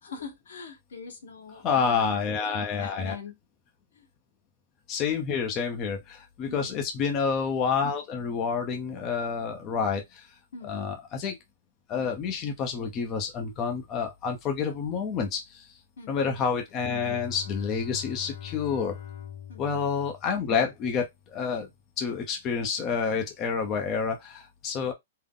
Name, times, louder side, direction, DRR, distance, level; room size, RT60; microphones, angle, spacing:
voice 1, 0.0-3.4 3.9-4.1 6.5-6.8 10.5-10.9 16.0-16.3 19.5-19.8, left 5 dB, 90° left, 1.3 m, -43 dB
voice 2, 1.6-3.1 4.9-10.3 10.6-11.4 11.9-15.7 16.1-18.9 19.6-21.7 22.0-24.9, left 6 dB, 20° left, 0.6 m, -29 dB
Bowed string instrument, 16.7-21.2, left 9 dB, 60° left, 1.1 m, -43 dB
3.7 x 2.1 x 3.6 m
hypercardioid pair, 165°, 0 cm